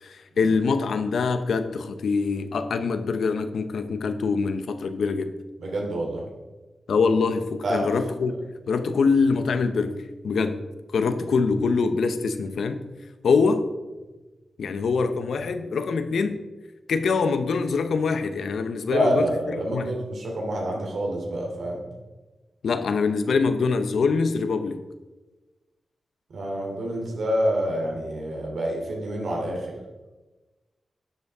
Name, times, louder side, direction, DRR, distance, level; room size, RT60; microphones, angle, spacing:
voice 1, 0.0-5.3 6.9-8.4 8.7-10.0 10.2-10.6 10.9-12.8 13.2-13.6 14.6-16.4 16.9-19.9 22.6-24.8, left 4 dB, 90° left, 9 dB, 0.8 m, -24 dB
voice 2, 5.6-6.2 7.6-7.9 18.9-21.8 26.3-29.7, right 1 dB, 80° right, -1 dB, 2.9 m, -27 dB
11.5 x 8.2 x 3.6 m, 1.2 s
wide cardioid pair, 115°, 0 cm